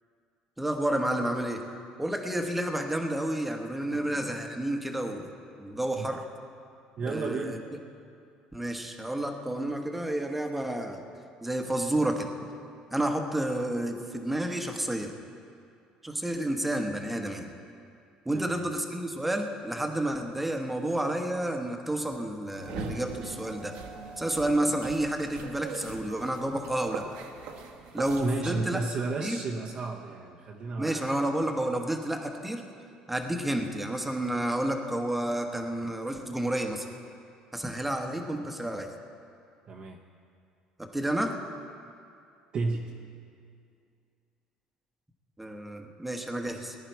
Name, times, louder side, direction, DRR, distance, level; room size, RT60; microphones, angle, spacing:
voice 1, 0.6-1.6 2.0-5.3 5.6-6.2 7.1-7.6 8.5-11.0 11.4-12.3 12.9-15.1 16.0-17.5 18.2-23.8 24.2-27.1 27.9-28.8 29.2-29.4 30.8-32.6 33.1-36.9 37.5-38.9 40.8-41.4 45.4-46.8, right 1 dB, 5° right, 4 dB, 1.2 m, -30 dB
voice 2, 3.9-4.3 6.0-6.1 7.0-7.6 18.3-18.6 28.2-31.1 39.7-40.0 42.5-42.9, right 3 dB, 45° right, -1 dB, 0.9 m, -33 dB
sound 1, 22.6-28.6, right 4 dB, 75° right, 1.4 m, -41 dB
19.0 x 10.5 x 4.6 m, 2.5 s
cardioid pair, 125°, 2 cm